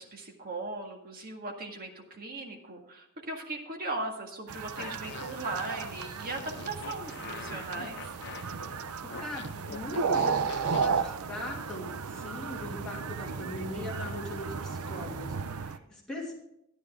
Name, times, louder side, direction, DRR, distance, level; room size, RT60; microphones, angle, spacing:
voice 1, 0.0-8.1, right 2 dB, 45° right, 2 dB, 1.9 m, -38 dB
sound 1, 4.5-15.8, right 5 dB, 85° right, 0.6 m, -34 dB
Fart, 4.8-10.9, left 6 dB, 55° left, 0.6 m, -45 dB
voice 2, 9.2-16.3, left 1 dB, 5° left, -5 dB, 2.5 m, -40 dB
12.5 x 10.0 x 3.7 m, 0.81 s
head